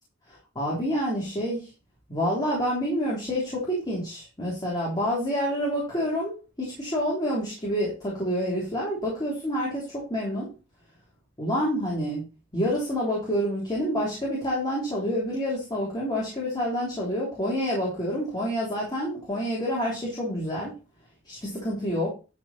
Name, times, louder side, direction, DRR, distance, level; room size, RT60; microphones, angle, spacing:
voice 1, 0.3-1.7 2.1-10.5 11.4-12.2 12.5-20.7 21.3-22.1, equal, 20° left, -5 dB, 3.5 m, -28 dB
12.0 x 4.9 x 4.3 m, 0.32 s
head